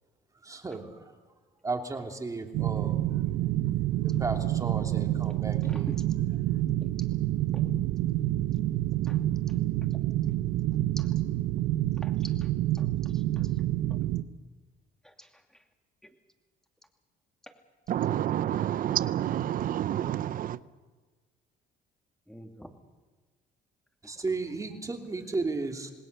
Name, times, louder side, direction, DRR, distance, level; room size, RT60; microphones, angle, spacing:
voice 1, 0.4-1.0 1.6-3.1 4.0-5.9 24.0-25.9, right 3 dB, 20° right, 3.0 m, -34 dB
sound 1, 2.5-14.2, right 14 dB, 85° right, 0.8 m, -28 dB
voice 2, 5.6-6.0 6.8-6.9 7.5-7.7 9.0-9.2 11.0-11.1 12.0-12.1 12.4-12.5 12.7-13.5 15.0-15.3 16.0-16.1 22.3-22.7, equal, 5° left, 2.6 m, -47 dB
voice 3, 17.9-20.6, right 11 dB, 55° right, 0.7 m, -28 dB
27.0 x 19.5 x 6.7 m
cardioid pair, 110°, 17 cm